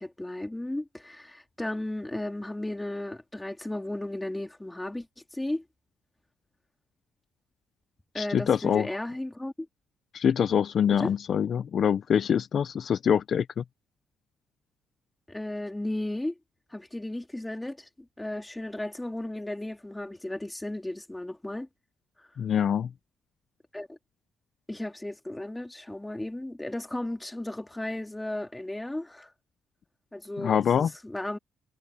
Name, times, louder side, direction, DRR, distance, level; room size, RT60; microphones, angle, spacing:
voice 1, 0.0-5.1 5.3-5.6 8.1-9.7 10.9-11.1 15.3-16.4 16.7-21.7 23.7-24.0 24.7-29.3 30.1-31.4, left 1 dB, 10° left, 3.8 m, -35 dB
voice 2, 8.1-8.9 10.1-13.6 22.4-22.9 30.4-30.9, left 8 dB, 55° left, 1.0 m, -25 dB
cardioid pair, 90°, 0 cm